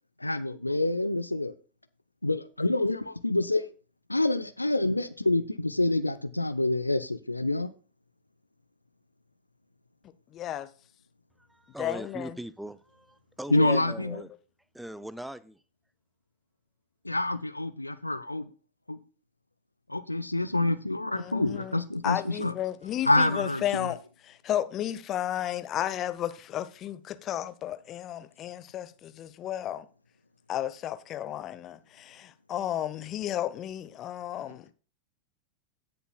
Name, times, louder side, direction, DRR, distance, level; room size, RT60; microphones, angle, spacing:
voice 1, 0.2-1.5 2.2-3.7 4.1-7.7 13.5-14.2 17.0-18.5 18.9-19.0 19.9-22.5 23.0-23.9, left 2 dB, 85° left, 0.7 m, -27 dB
voice 2, 10.3-10.7 11.8-12.4 13.5-13.9 21.2-24.0 24.2-29.9 30.5-34.7, left 11 dB, 30° left, 0.9 m, -33 dB
voice 3, 11.5-14.3 14.7-15.6, right 1 dB, 5° right, 0.5 m, -40 dB
17.0 x 6.9 x 2.3 m
figure-of-eight pair, 90°, 0 cm